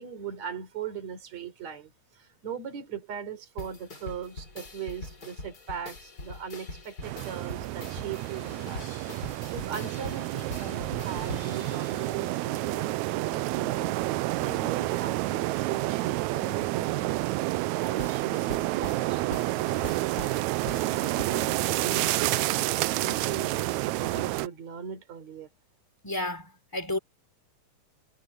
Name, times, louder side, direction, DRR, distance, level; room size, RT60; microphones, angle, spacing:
voice 1, 0.0-8.8 9.5-14.0 14.4-25.5, right 7 dB, 55° right, 5.1 m, -40 dB
sound 1, 3.6-12.7 18.0-21.3, left 2 dB, 30° left, 4.5 m, -43 dB
sound 2, 7.0-24.5, right 18 dB, 80° right, 1.7 m, -29 dB
voice 2, 26.0-27.0, left 2 dB, 5° left, 3.1 m, -31 dB
omnidirectional pair, 3.7 m